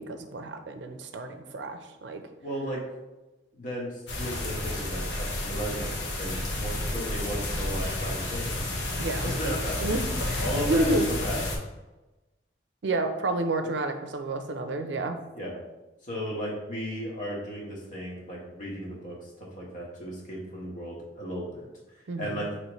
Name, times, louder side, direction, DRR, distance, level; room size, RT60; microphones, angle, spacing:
voice 1, 0.0-2.2 9.0-9.3 9.8-11.1 12.8-15.2 22.1-22.4, right 2 dB, 75° right, 7 dB, 0.5 m, -30 dB
voice 2, 2.4-2.8 3.5-8.6 9.2-9.9 10.4-11.4 15.3-15.6 16.0-19.3 19.6-21.7 22.2-22.5, equal, 45° left, -4 dB, 1.2 m, -35 dB
sound 1, 4.1-11.6, left 1 dB, 80° left, 0.9 m, -31 dB
5.6 x 3.0 x 3.0 m, 1.1 s
head